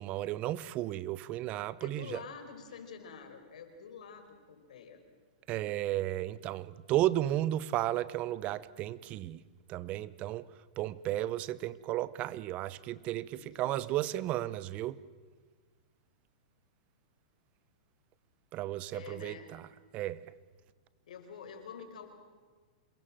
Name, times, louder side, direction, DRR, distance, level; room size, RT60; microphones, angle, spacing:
voice 1, 0.0-2.2 5.5-9.4 9.7-10.5 10.8-15.0 18.5-19.6 19.9-20.3, right 14 dB, 35° right, 1.0 m, -33 dB
voice 2, 1.8-5.0 13.3-14.0 18.9-19.5 21.1-22.1, left 6 dB, 75° left, 5.1 m, -48 dB
27.0 x 22.0 x 7.7 m
hypercardioid pair, 135°, 4 cm